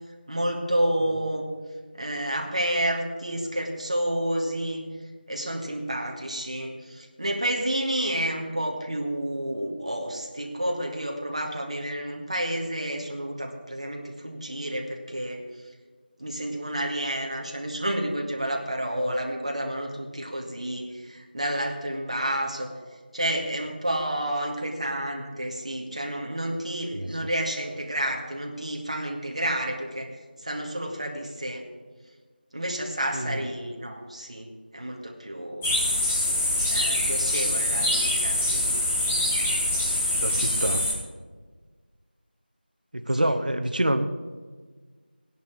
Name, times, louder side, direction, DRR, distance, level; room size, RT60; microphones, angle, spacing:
voice 1, 0.3-1.5 1.9-4.8 5.3-15.4 16.2-22.7 23.1-30.1 30.4-31.7 32.5-35.7 36.7-38.8 43.2-43.4, right 1 dB, 40° right, 1 dB, 2.0 m, -30 dB
sound 1, 35.6-40.9, left 1 dB, 5° left, 1.3 m, -24 dB
voice 2, 40.1-40.9 42.9-44.1, right 1 dB, 55° right, 7 dB, 1.1 m, -26 dB
17.0 x 11.0 x 4.7 m, 1.5 s
figure-of-eight pair, 175°, 6 cm